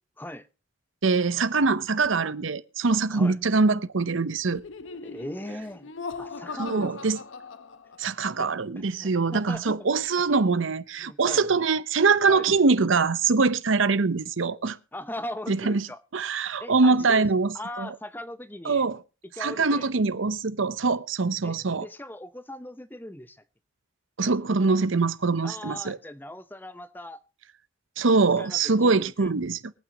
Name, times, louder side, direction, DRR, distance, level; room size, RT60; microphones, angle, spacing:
voice 1, 1.0-4.6 6.6-7.2 8.0-14.8 15.5-15.9 16.1-17.9 18.6-19.0 19.4-21.9 24.2-26.0 28.0-29.7, right 4 dB, 75° right, 0.8 m, -23 dB
Laughter, 4.5-8.2, left 4 dB, 75° left, 0.9 m, -40 dB
voice 2, 5.0-5.9 6.2-7.1 8.4-8.5 8.8-9.8 11.0-11.5 12.3-12.5 14.9-16.0 16.6-18.9 19.3-19.9 21.4-21.6 21.8-23.4 25.4-27.2 28.4-29.3, left 1 dB, 10° left, 0.8 m, -39 dB
23.5 x 9.0 x 2.9 m
head